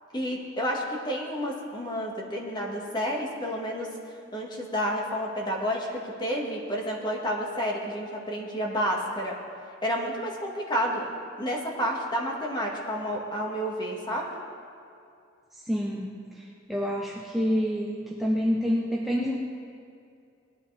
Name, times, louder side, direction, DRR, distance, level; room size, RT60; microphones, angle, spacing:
voice 1, 0.1-3.9 4.3-9.4 9.8-11.1 11.4-14.3, equal, 25° left, -1 dB, 1.8 m, -30 dB
voice 2, 15.5-19.4, equal, ahead, -4 dB, 0.8 m, -28 dB
19.0 x 11.5 x 3.4 m, 2.5 s
head